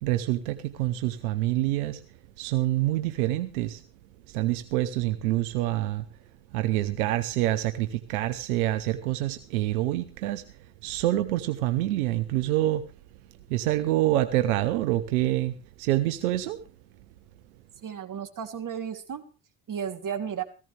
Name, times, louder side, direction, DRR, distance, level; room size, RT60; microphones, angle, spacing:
voice 1, 0.0-2.0 2.4-3.8 4.3-6.0 6.5-10.4 10.8-12.8 13.5-16.6, right 15 dB, 90° right, 1.1 m, -26 dB
voice 2, 17.8-19.2 19.7-20.4, right 8 dB, 50° right, 3.1 m, -33 dB
18.0 x 15.0 x 3.4 m
hypercardioid pair, 65°, 42 cm